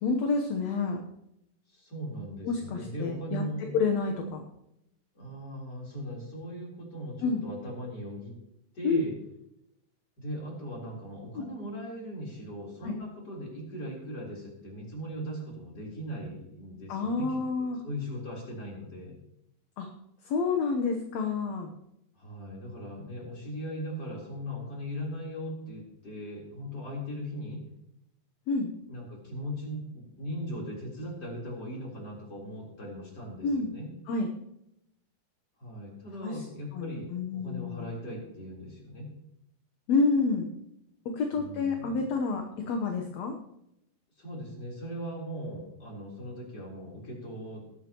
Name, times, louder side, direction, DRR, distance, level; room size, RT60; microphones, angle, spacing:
voice 1, 0.0-1.0 2.4-4.4 7.2-7.4 8.8-9.0 11.4-11.5 12.8-13.0 16.9-17.8 19.8-19.9 20.2-21.7 28.5-28.7 33.4-33.7 34.1-34.3 36.2-36.5 36.7-37.8 39.9-40.5 41.1-43.4, left 4 dB, 65° left, 4 dB, 2.0 m, -29 dB
voice 2, 1.7-3.7 5.1-8.3 8.7-9.1 10.2-19.2 22.2-27.7 28.9-33.9 35.6-39.1 41.3-42.0 44.2-47.6, equal, 30° left, -3 dB, 4.2 m, -39 dB
19.5 x 10.5 x 3.0 m, 0.81 s
omnidirectional pair, 3.9 m